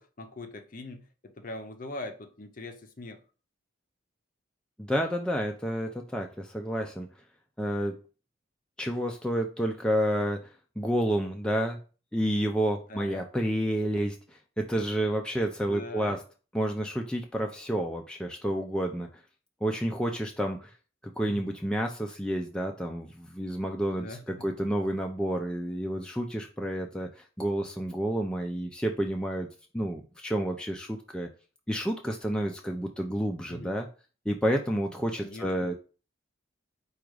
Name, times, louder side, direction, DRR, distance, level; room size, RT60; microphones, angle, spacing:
voice 1, 0.0-3.2 12.9-13.3 15.7-16.2 21.3-21.5 23.9-24.4 33.5-33.8 35.2-35.7, left 2 dB, 45° left, 0.6 m, -42 dB
voice 2, 4.8-7.1 7.6-8.0 8.8-11.8 12.1-16.2 16.5-19.1 19.6-20.7 21.2-29.5 29.7-31.3 31.7-33.9 34.3-35.7, equal, 5° left, 0.3 m, -30 dB
4.8 x 2.3 x 4.7 m
head